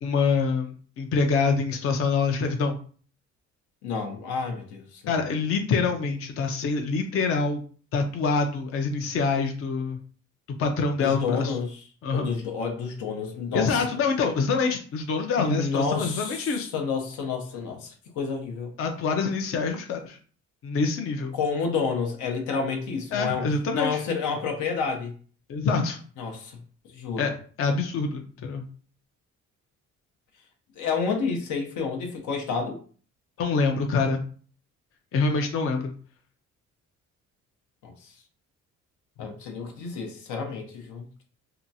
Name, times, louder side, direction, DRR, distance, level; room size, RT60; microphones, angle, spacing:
voice 1, 0.0-2.8 5.1-7.6 7.9-10.0 10.6-11.6 12.0-12.3 13.5-16.7 18.8-20.2 20.6-21.3 23.1-24.0 25.5-26.0 27.2-27.3 27.6-28.6 33.4-34.2 35.1-35.9, left 4 dB, 50° left, 0.5 m, -25 dB
voice 2, 3.8-5.3 11.0-11.9 12.1-13.8 15.4-18.7 21.3-23.5 23.7-25.1 26.2-27.3 30.8-32.8 37.8-38.1 39.2-41.2, left 5 dB, 80° left, 0.7 m, -30 dB
2.8 x 2.3 x 2.6 m
cardioid pair, 90°, 30 cm